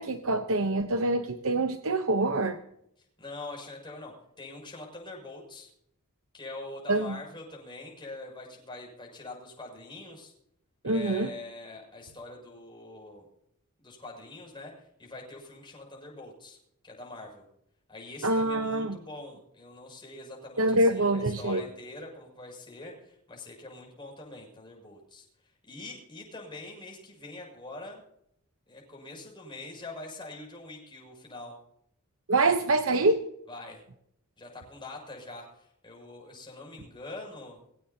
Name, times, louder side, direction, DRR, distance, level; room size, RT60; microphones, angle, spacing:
voice 1, 0.0-2.6 6.9-7.2 10.8-11.3 18.2-19.0 20.6-21.6 32.3-33.2, right 2 dB, 65° right, 7 dB, 1.0 m, -25 dB
voice 2, 3.2-5.7 6.3-10.3 10.8-13.3 13.8-14.7 15.0-16.6 16.8-17.4 17.9-28.0 28.7-31.5 33.5-33.8 34.4-37.6, left 2 dB, 20° left, -1 dB, 6.9 m, -44 dB
23.0 x 17.0 x 2.9 m, 0.73 s
head